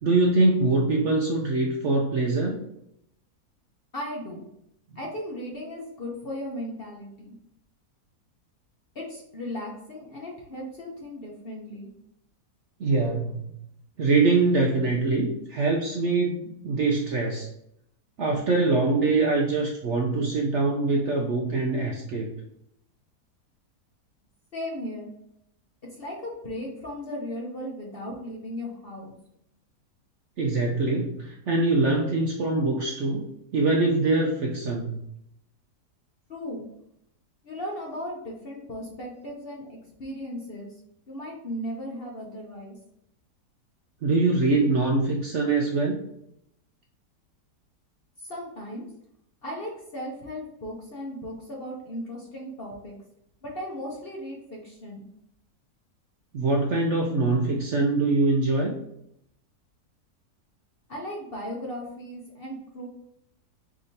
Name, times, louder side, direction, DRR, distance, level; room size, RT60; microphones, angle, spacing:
voice 1, 0.0-2.6 12.8-13.5 14.0-17.5 18.2-22.3 30.4-35.0 44.0-46.0 56.3-58.7, right 3 dB, 65° right, 1 dB, 0.7 m, -23 dB
voice 2, 3.9-4.5 4.9-7.3 8.9-11.9 24.5-25.1 25.9-29.2 36.3-36.7 37.4-40.7 41.1-42.7 48.2-48.9 49.4-53.0 53.4-55.1 60.9-62.9, equal, 50° left, -2 dB, 0.7 m, -36 dB
4.7 x 3.5 x 2.7 m, 0.77 s
omnidirectional pair, 1.7 m